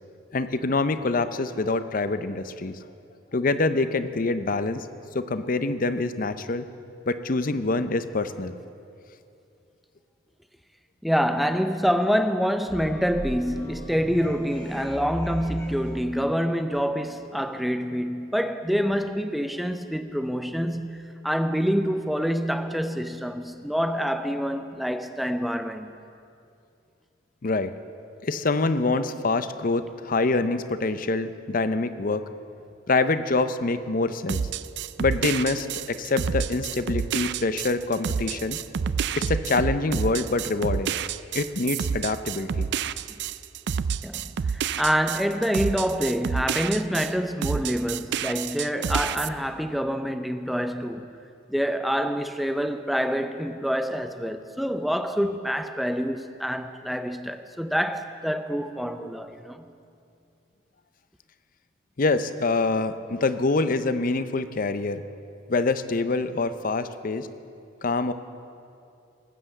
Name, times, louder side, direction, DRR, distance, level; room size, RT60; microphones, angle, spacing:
voice 1, 0.3-2.8 3.3-4.9 5.1-6.7 7.1-8.5 27.4-27.7 28.2-32.2 32.9-34.5 35.0-38.6 39.1-41.0 41.3-42.7 62.0-65.0 65.5-67.3 67.8-68.1, left 3 dB, 45° left, 0.6 m, -25 dB
voice 2, 11.0-25.9 44.0-51.1 51.5-59.7, equal, ahead, 0.6 m, -26 dB
sound 1, 12.7-16.0, equal, 15° left, 1.8 m, -37 dB
sound 2, 34.3-47.1 47.4-49.3, right 7 dB, 60° right, 0.4 m, -29 dB
19.0 x 7.9 x 7.8 m
head